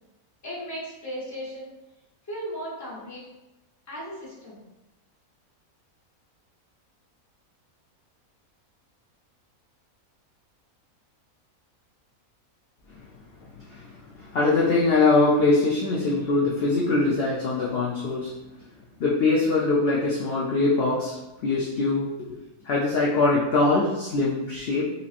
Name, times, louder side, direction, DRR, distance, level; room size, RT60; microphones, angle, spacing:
voice 1, 0.4-1.7 2.3-3.2 3.9-4.6, equal, 15° left, -7 dB, 0.6 m, -36 dB
voice 2, 12.9-18.3 19.0-22.1 22.6-24.9, left 3 dB, 70° left, -5 dB, 0.6 m, -23 dB
3.0 x 2.8 x 2.4 m, 1.0 s
omnidirectional pair, 1.5 m